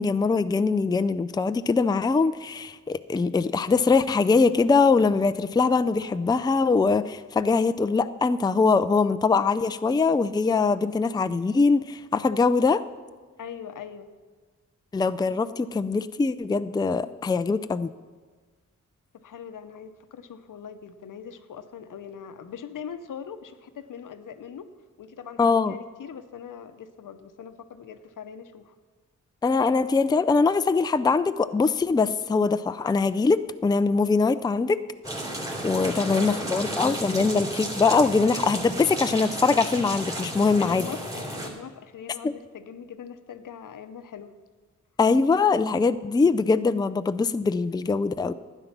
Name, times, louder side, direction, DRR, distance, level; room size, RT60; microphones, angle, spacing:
voice 1, 0.0-12.8 14.9-17.9 25.4-25.7 29.4-34.8 35.6-40.9 42.2-42.3 45.0-48.3, left 4 dB, 15° left, 12 dB, 0.4 m, -22 dB
voice 2, 13.4-14.1 19.1-24.7 25.0-28.7 35.8-37.2 40.6-44.3, left 7 dB, 80° left, 10 dB, 0.8 m, -41 dB
sound 1, 35.0-41.5, right 1 dB, 10° right, 2.9 m, -33 dB
12.0 x 9.1 x 5.9 m, 1.4 s
cardioid pair, 65°, 31 cm